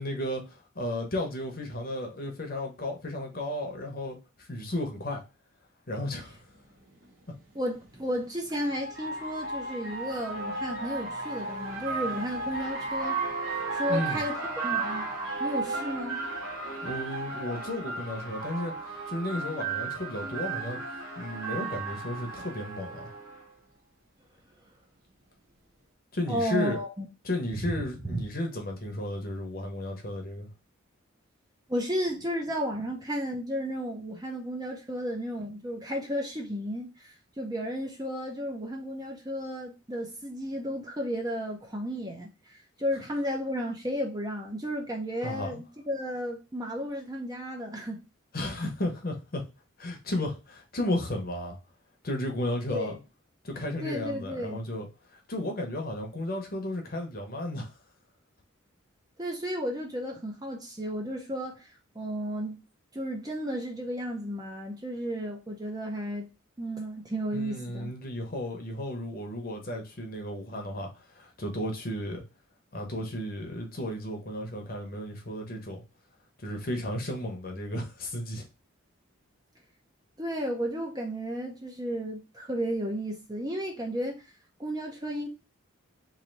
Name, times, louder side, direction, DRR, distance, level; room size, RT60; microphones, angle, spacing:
voice 1, 0.0-5.2 5.9-6.4 13.9-14.2 16.8-18.7 19.1-20.8 21.2-23.1 26.1-26.8 27.2-30.5 45.2-45.6 48.3-49.4 49.8-51.6 52.0-53.0 53.4-57.7 67.3-70.9 71.1-72.2 72.7-75.8 76.4-78.4, left 1 dB, 45° left, 0.8 m, -33 dB
sound 1, 6.3-6.4 7.8-23.4, right 3 dB, 65° right, 1.0 m, -34 dB
voice 2, 7.5-13.2 13.7-15.1 15.4-16.2 26.3-27.1 27.7-27.8 28.1-28.2 31.7-48.0 52.7-53.0 53.8-54.6 59.2-61.7 61.9-62.6 62.9-66.3 66.6-67.9 80.2-84.2 84.6-85.3, equal, 20° right, 0.6 m, -33 dB
3.2 x 2.7 x 3.9 m
head